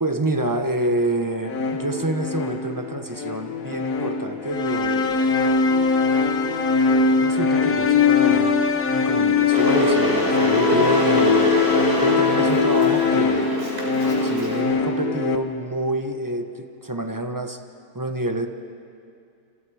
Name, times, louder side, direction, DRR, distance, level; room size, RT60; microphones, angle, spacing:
voice 1, 0.0-5.2 7.2-8.5 8.9-11.6 12.0-13.5 14.2-17.6 17.9-18.5, right 1 dB, 15° right, 6 dB, 0.9 m, -27 dB
sound 1, 1.4-15.4, left 5 dB, 60° left, 1.6 m, -21 dB
Water / Boiling, 9.5-14.6, right 1 dB, 40° right, 4.3 m, -25 dB
28.0 x 27.5 x 4.9 m, 2.5 s
omnidirectional pair, 1.6 m